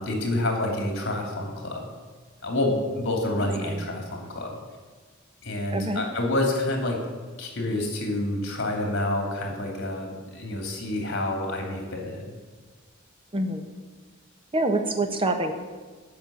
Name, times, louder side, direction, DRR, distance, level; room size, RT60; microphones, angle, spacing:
voice 1, 0.0-1.9 2.4-4.6 5.4-7.0 7.4-12.3, left 1 dB, 60° left, 1 dB, 2.9 m, -28 dB
voice 2, 5.7-6.0 13.3-13.7 14.5-15.5, right 2 dB, 25° right, 6 dB, 1.2 m, -26 dB
12.0 x 6.6 x 8.7 m, 1.4 s
head